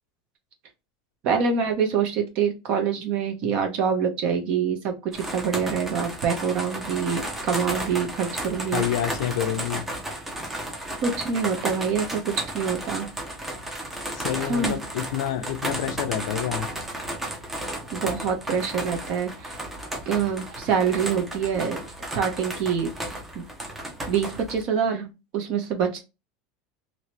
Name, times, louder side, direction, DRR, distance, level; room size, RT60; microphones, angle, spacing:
voice 1, 1.2-8.8 11.0-13.1 14.4-14.8 17.9-19.6 20.1-21.8 22.1-22.9 23.3-23.4 24.1-26.0, right 6 dB, 45° right, 1.0 m, -25 dB
sound 1, 5.1-24.6, right 1 dB, 10° right, 0.7 m, -33 dB
voice 2, 8.7-9.8 14.1-16.7 21.5-21.7, left 11 dB, 75° left, 0.5 m, -28 dB
2.9 x 2.8 x 3.0 m
supercardioid pair, 165°, 2 cm